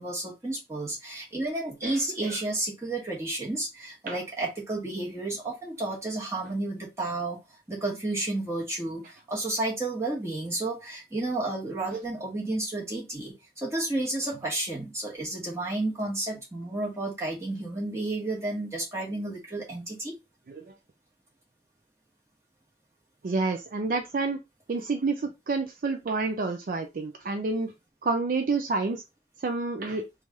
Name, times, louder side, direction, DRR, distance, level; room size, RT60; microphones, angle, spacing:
voice 1, 0.0-7.4 7.7-20.1, right 2 dB, 15° right, 1.2 m, -31 dB
voice 2, 1.8-2.4 4.1-4.2 20.5-20.8 23.2-24.4 24.7-27.7 28.0-29.0 29.4-30.1, right 3 dB, 50° right, 0.4 m, -29 dB
3.1 x 2.4 x 4.0 m
head